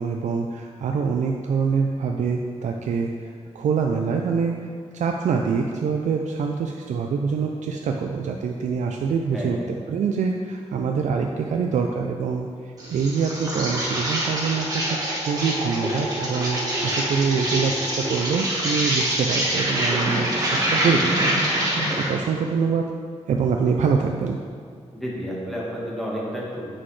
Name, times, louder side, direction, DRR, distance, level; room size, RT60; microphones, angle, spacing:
voice 1, 0.0-4.5 4.9-21.4 21.9-22.9 23.3-24.4, right 5 dB, 90° right, 2 dB, 0.4 m, -25 dB
voice 2, 9.3-9.6 24.9-26.7, equal, ahead, -5 dB, 1.4 m, -31 dB
Insect, 12.8-22.2, right 1 dB, 30° right, 1.4 m, -25 dB
7.6 x 6.1 x 3.2 m, 2.1 s
wide cardioid pair, 150°, 12 cm